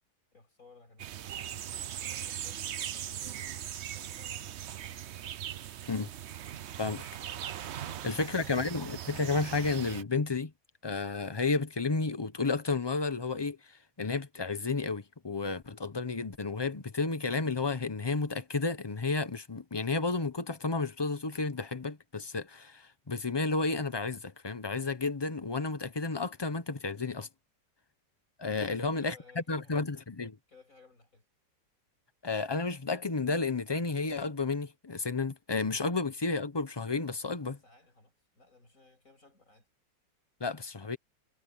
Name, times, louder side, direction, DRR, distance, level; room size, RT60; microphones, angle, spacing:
voice 1, 0.3-1.9 2.2-3.7 3.9-5.0 5.7-6.1 7.8-8.6 28.5-29.9 30.5-31.3 37.4-39.7, left 3 dB, 50° left, 6.9 m, -59 dB
sound 1, 1.0-10.0, right 10 dB, 65° right, 0.7 m, -40 dB
voice 2, 8.0-10.5 10.8-13.6 14.0-27.3 28.4-29.1 29.5-30.4 32.2-37.6 40.4-41.0, left 3 dB, 25° left, 0.6 m, -32 dB
omnidirectional pair, 1.9 m